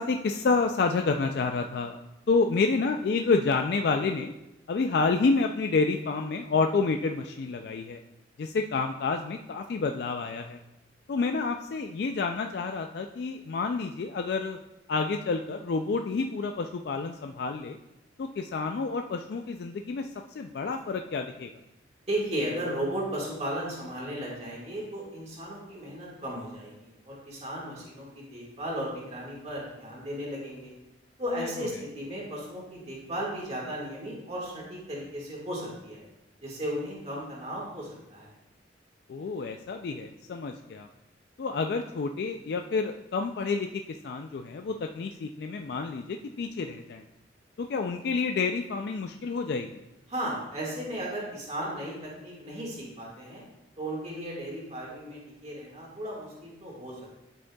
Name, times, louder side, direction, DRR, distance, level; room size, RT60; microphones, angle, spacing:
voice 1, 0.0-2.0 2.3-4.3 4.7-8.0 8.4-10.6 11.1-14.6 14.9-17.8 18.2-20.1 20.4-21.5 39.1-40.9 41.4-47.0 47.6-49.7, left 4 dB, 60° left, 5 dB, 0.3 m, -29 dB
voice 2, 22.1-30.7 31.2-36.0 36.4-38.3 50.1-53.4 53.8-57.1, right 1 dB, 35° right, -4 dB, 1.7 m, -35 dB
12.0 x 5.2 x 2.3 m, 0.94 s
head